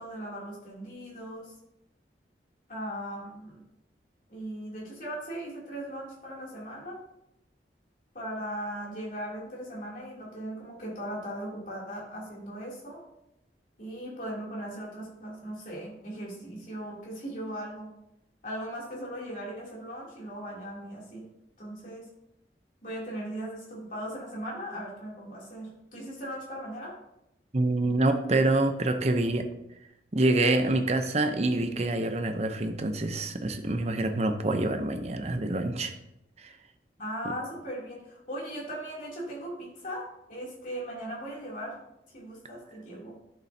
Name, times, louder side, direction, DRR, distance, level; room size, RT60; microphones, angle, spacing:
voice 1, 0.0-1.5 2.7-3.6 4.3-7.0 8.1-13.0 13.8-17.9 18.4-21.3 21.6-22.1 22.8-26.9 37.0-40.0 40.3-41.7 42.1-43.2, right 1 dB, 50° left, -4 dB, 3.0 m, -38 dB
voice 2, 27.5-29.4 30.1-35.9, right 2 dB, 40° right, 7 dB, 0.8 m, -26 dB
11.0 x 6.9 x 2.8 m, 0.85 s
head